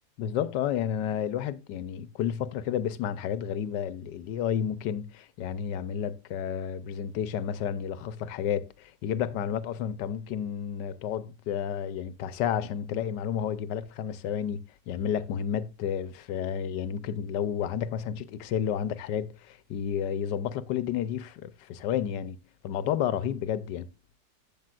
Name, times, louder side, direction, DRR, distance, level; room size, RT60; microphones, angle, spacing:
voice 1, 0.2-23.9, left 9 dB, 75° left, 1.3 m, -31 dB
12.0 x 7.7 x 2.3 m
omnidirectional pair, 2.0 m